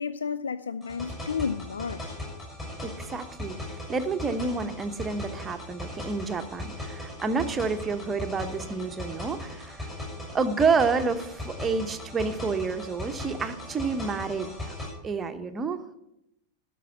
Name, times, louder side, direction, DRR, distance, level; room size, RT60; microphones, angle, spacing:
voice 1, 0.0-2.2, left 6 dB, 70° left, 0.3 m, -32 dB
sound 1, 0.8-14.9, left 1 dB, 15° left, 6.1 m, -38 dB
voice 2, 2.8-9.9 10.3-14.7 15.0-15.8, right 4 dB, 20° right, 1.0 m, -29 dB
12.5 x 6.1 x 8.1 m
figure-of-eight pair, 90°, 0 cm